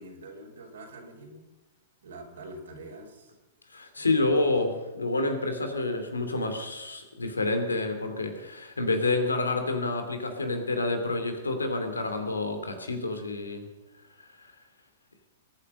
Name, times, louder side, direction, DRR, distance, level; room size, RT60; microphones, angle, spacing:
voice 1, 0.0-1.5 2.0-3.3 4.0-4.5, right 1 dB, 70° right, -1 dB, 4.8 m, -45 dB
voice 2, 3.7-13.6 14.4-14.5, left 2 dB, 85° left, 6 dB, 2.9 m, -28 dB
21.0 x 10.0 x 6.5 m, 1.1 s
figure-of-eight pair, 105°, 0 cm